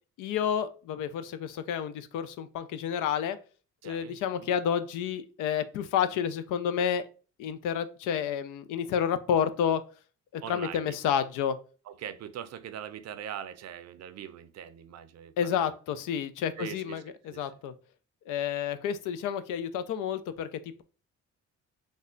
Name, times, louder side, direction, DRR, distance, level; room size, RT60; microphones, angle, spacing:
voice 1, 0.2-3.4 3.8-7.0 7.4-9.8 10.3-11.6 15.4-17.7 18.3-20.8, left 8 dB, 90° left, 0.5 m, -30 dB
voice 2, 3.8-4.5 10.4-10.9 11.9-15.8 16.6-17.0 17.3-17.5, right 9 dB, 60° right, 0.5 m, -42 dB
3.3 x 2.1 x 3.7 m
cardioid pair, 90°, 30 cm